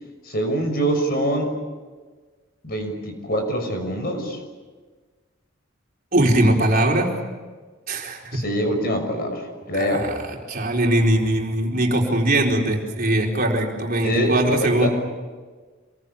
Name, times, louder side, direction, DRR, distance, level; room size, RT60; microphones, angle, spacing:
voice 1, 0.2-1.5 2.6-4.4 8.3-10.1 14.0-14.9, right 1 dB, 50° left, 4 dB, 6.3 m, -24 dB
voice 2, 6.1-7.1 7.9-8.4 9.7-14.9, right 1 dB, 45° right, 0 dB, 4.5 m, -21 dB
27.0 x 22.5 x 8.6 m, 1.4 s
head